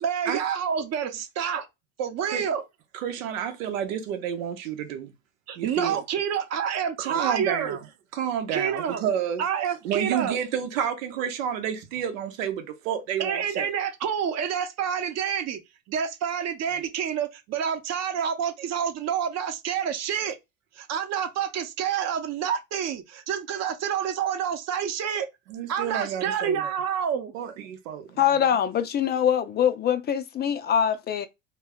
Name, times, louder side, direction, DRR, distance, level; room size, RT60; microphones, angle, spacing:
voice 1, 0.0-1.7 2.0-2.6 5.5-7.8 8.5-9.0 9.4-10.4 13.2-15.6 15.9-20.4 20.8-25.3 25.7-27.3, right 8 dB, 40° right, 0.8 m, -28 dB
voice 2, 2.9-5.1 5.6-6.0 7.0-7.8 8.1-9.4 9.8-13.7 25.5-26.7 27.3-28.2, right 9 dB, 80° right, 0.8 m, -30 dB
voice 3, 28.2-31.3, left 9 dB, 25° left, 0.4 m, -23 dB
2.3 x 2.1 x 3.5 m
hypercardioid pair, 90°, 39 cm